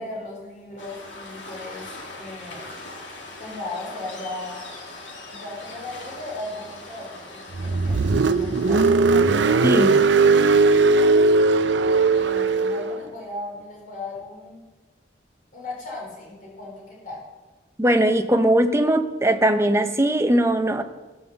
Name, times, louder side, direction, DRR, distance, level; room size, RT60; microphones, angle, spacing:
voice 1, 0.0-2.6 3.4-4.6 5.3-11.2 12.1-14.6 15.5-17.2, left 2 dB, 50° left, -3 dB, 3.8 m, -37 dB
Waves surf, 0.8-8.9, left 2 dB, 85° left, 2.3 m, -40 dB
Car, 7.5-13.0, right 3 dB, 70° right, 0.6 m, -18 dB
voice 2, 17.8-20.8, right 1 dB, 15° right, 7 dB, 0.7 m, -20 dB
15.5 x 5.5 x 6.8 m, 1.2 s
head